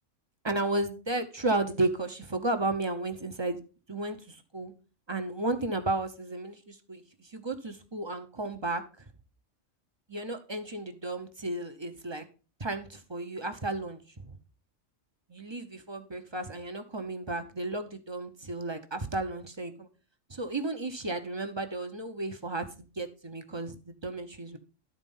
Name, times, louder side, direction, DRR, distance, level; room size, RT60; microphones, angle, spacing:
voice 1, 0.4-3.6 3.9-4.7 5.1-9.0 10.1-12.2 12.6-14.4 15.3-19.9 20.3-24.6, right 2 dB, 25° right, 0.9 m, -33 dB
12.5 x 4.4 x 5.4 m
omnidirectional pair, 1.3 m